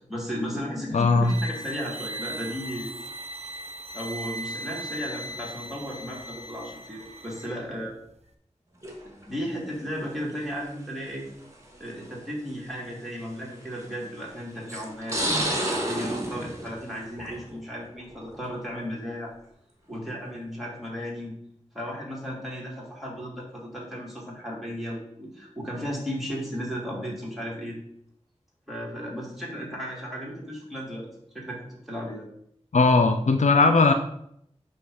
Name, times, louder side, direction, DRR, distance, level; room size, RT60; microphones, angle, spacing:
voice 1, 0.1-2.9 3.9-8.0 9.3-11.3 11.8-19.3 19.9-21.3 21.7-27.8 28.7-31.1 31.3-31.6 31.9-32.2, equal, ahead, -4 dB, 2.8 m, -35 dB
voice 2, 0.9-1.3 32.7-33.9, left 3 dB, 85° left, 6 dB, 0.5 m, -18 dB
sound 1, 1.2-7.6, right 1 dB, 60° right, 0.8 m, -38 dB
sound 2, 8.8-9.2 10.3-10.4 11.5-11.6 12.1-12.2 13.6-14.0 14.7-17.6 17.9-18.4, right 1 dB, 25° right, 1.7 m, -30 dB
8.5 x 3.3 x 5.5 m, 0.72 s
wide cardioid pair, 55°, 12 cm